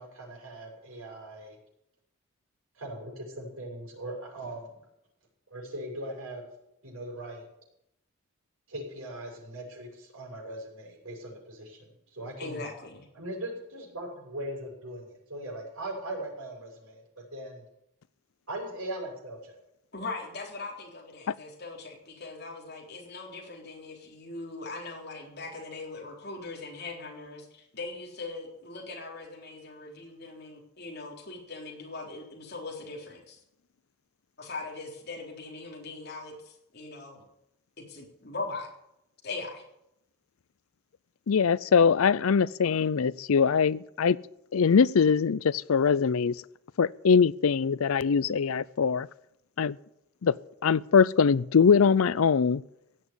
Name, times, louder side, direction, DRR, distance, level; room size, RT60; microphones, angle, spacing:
voice 1, 0.0-1.6 2.8-4.7 5.5-6.4 6.8-7.4 8.7-12.6 13.1-17.0 17.3-17.6 18.5-19.6, right 1 dB, 90° right, 0 dB, 6.6 m, -39 dB
voice 2, 12.4-13.1 19.9-33.4 34.4-37.3 37.8-38.7 39.2-39.7, left 3 dB, 50° left, -1 dB, 3.8 m, -40 dB
voice 3, 41.3-44.2 44.5-46.3 46.8-49.1 49.6-49.8 50.2-50.3 50.6-52.6, left 6 dB, 80° left, 21 dB, 0.5 m, -22 dB
16.5 x 7.3 x 9.9 m, 0.80 s
head